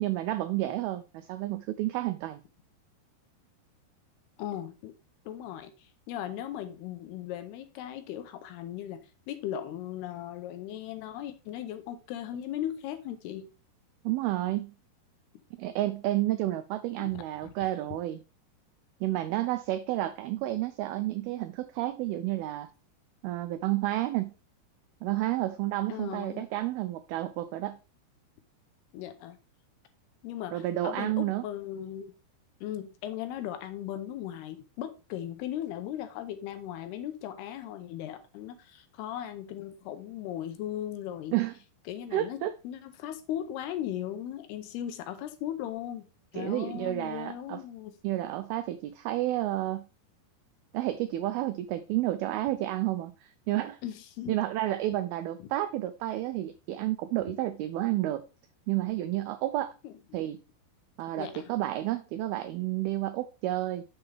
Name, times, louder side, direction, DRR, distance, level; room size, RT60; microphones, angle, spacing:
voice 1, 0.0-2.4 14.0-14.7 15.6-18.2 19.0-22.7 23.2-24.3 25.0-27.8 30.5-31.5 41.3-41.5 42.1-42.5 46.3-47.6 48.0-49.9 50.7-53.8 54.3-58.2 58.7-59.7 60.1-60.4 61.0-63.8, right 15 dB, 90° right, 2.1 m, -30 dB
voice 2, 4.4-4.9 5.3-13.5 17.0-17.5 25.9-26.5 28.9-29.4 30.2-32.1 32.6-41.4 41.9-46.1 46.3-48.0 53.8-54.4 55.4-55.5 59.8-59.9 61.2-61.5, left 11 dB, 80° left, 2.6 m, -38 dB
7.1 x 6.7 x 3.4 m
omnidirectional pair, 4.9 m